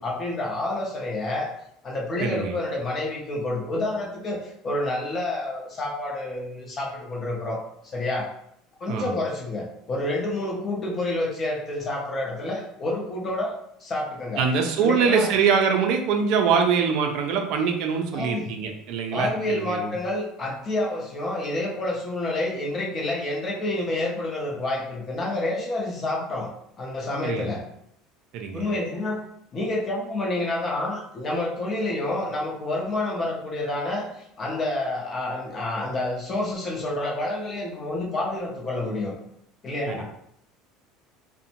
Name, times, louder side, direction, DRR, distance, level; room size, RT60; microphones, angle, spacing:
voice 1, 0.0-1.5 1.8-7.6 7.8-8.3 8.8-13.5 13.8-14.4 14.8-15.3 18.1-18.6 19.1-26.5 26.8-27.6 28.5-29.2 29.5-39.2 39.6-40.0, left 2 dB, 30° left, -1 dB, 0.6 m, -28 dB
voice 2, 2.2-2.6 8.9-9.1 14.4-19.9 27.2-27.6 28.3-28.7 39.9-40.0, right 6 dB, 60° right, 4 dB, 0.4 m, -23 dB
2.6 x 2.1 x 2.8 m, 0.73 s
cardioid pair, 135°, 0 cm